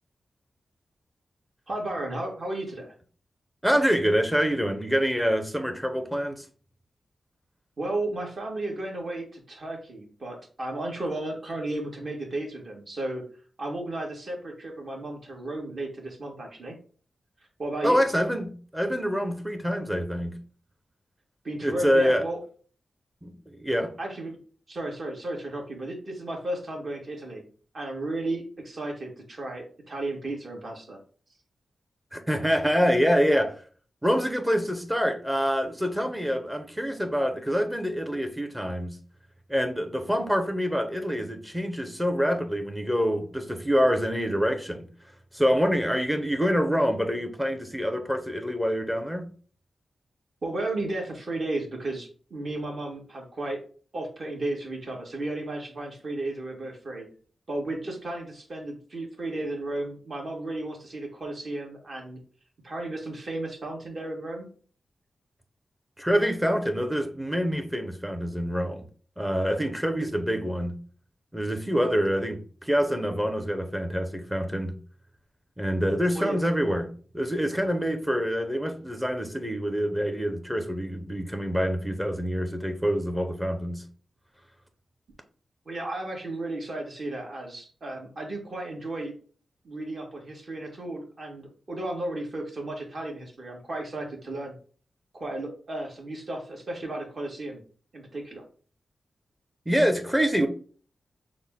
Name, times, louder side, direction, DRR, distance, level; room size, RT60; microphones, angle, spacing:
voice 1, 1.7-2.9 7.8-13.2 13.6-16.8 17.6-18.0 21.4-22.4 24.0-24.4 24.7-27.4 27.7-31.0 50.4-53.6 53.9-57.1 57.5-62.2 62.6-64.5 76.1-76.4 85.6-89.1 89.6-94.6 95.1-97.6 97.9-98.4, right 2 dB, 45° right, 1.4 m, -34 dB
voice 2, 3.6-6.5 17.8-20.4 21.6-22.2 23.2-23.9 32.1-33.6 34.0-39.0 39.5-44.9 45.3-49.3 66.0-68.8 69.2-70.8 71.3-74.8 75.6-83.8 99.7-100.5, equal, 5° right, 0.7 m, -26 dB
6.2 x 2.1 x 3.6 m
wide cardioid pair, 150°, 0 cm